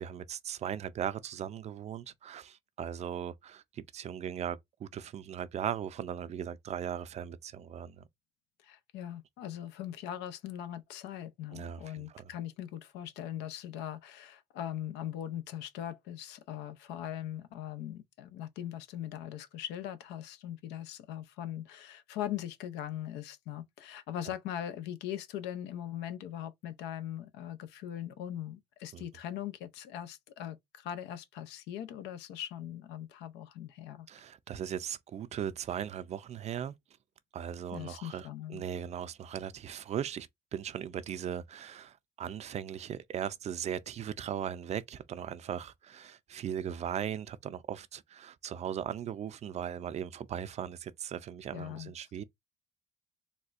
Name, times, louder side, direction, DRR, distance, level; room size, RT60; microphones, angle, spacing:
voice 1, 0.0-8.1 11.5-12.3 28.9-29.0 34.1-36.7 37.3-38.3 38.5-52.2, right 9 dB, 40° right, 0.4 m, -38 dB
voice 2, 8.6-34.1 37.7-38.6 51.5-51.9, left 11 dB, 90° left, 0.6 m, -40 dB
4.1 x 2.2 x 2.4 m
cardioid pair, 110°, 17 cm